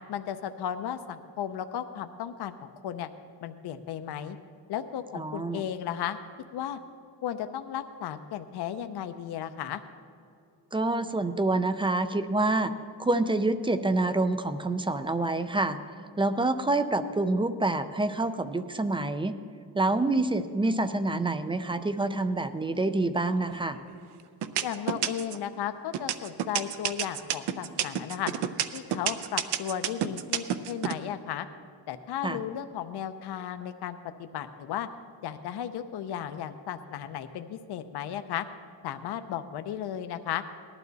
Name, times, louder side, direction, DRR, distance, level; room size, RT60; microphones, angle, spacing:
voice 1, 0.1-2.5 2.8-3.1 3.4-4.4 4.7-6.2 6.5-6.8 7.2-9.8 24.6-28.3 28.7-31.5 31.9-34.9 35.2-38.5 38.8-40.4, left 10 dB, 70° left, 9 dB, 0.7 m, -35 dB
voice 2, 5.1-5.6 10.7-12.7 13.0-15.8 16.2-19.4 19.7-23.8 32.2-32.4, right 2 dB, 15° right, 11 dB, 0.3 m, -27 dB
sound 1, 23.5-23.9 24.4-25.4 25.9-30.9, right 10 dB, 70° right, 0.7 m, -29 dB
18.5 x 11.5 x 4.0 m, 2.4 s
wide cardioid pair, 170°, 41 cm